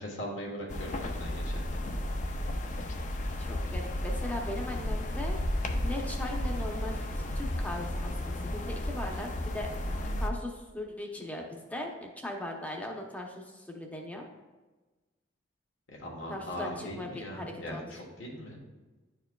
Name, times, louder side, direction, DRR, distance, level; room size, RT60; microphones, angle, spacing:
voice 1, 0.0-1.6 15.9-18.6, equal, 70° left, -2 dB, 1.4 m, -40 dB
sound 1, 0.7-10.3, left 1 dB, 40° left, 0.5 m, -33 dB
voice 2, 3.4-5.4 5.8-14.3 16.3-17.8, left 1 dB, 10° left, 1 dB, 0.8 m, -39 dB
10.5 x 4.5 x 2.3 m, 1.2 s
head